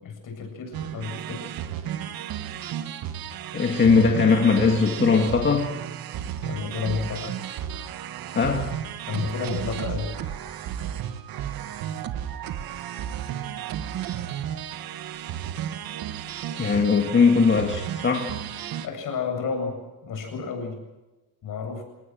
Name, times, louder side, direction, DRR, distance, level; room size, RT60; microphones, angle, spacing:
voice 1, 0.0-1.4 6.4-7.3 9.1-10.2 18.8-20.8 21.4-21.8, left 5 dB, 65° left, 4 dB, 7.8 m, -31 dB
sound 1, 0.7-18.9, right 10 dB, 80° right, 1.7 m, -33 dB
voice 2, 3.5-5.7 8.3-8.7 16.6-18.4, left 5 dB, 35° left, 2 dB, 2.2 m, -20 dB
28.5 x 18.0 x 7.8 m, 1.1 s
cardioid pair, 140°, 35 cm